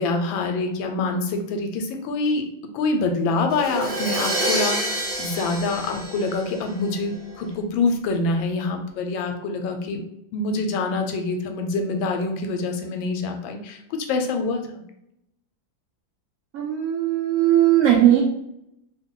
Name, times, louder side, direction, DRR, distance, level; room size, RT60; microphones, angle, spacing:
voice 1, 0.0-2.4 2.7-10.0 10.3-14.7, left 3 dB, 85° left, 4 dB, 1.3 m, -25 dB
Crash cymbal, 3.5-7.3, right 1 dB, 45° right, 0.4 m, -28 dB
voice 2, 16.5-18.2, right 12 dB, 85° right, -2 dB, 0.7 m, -18 dB
3.0 x 2.2 x 3.6 m, 0.79 s
omnidirectional pair, 2.1 m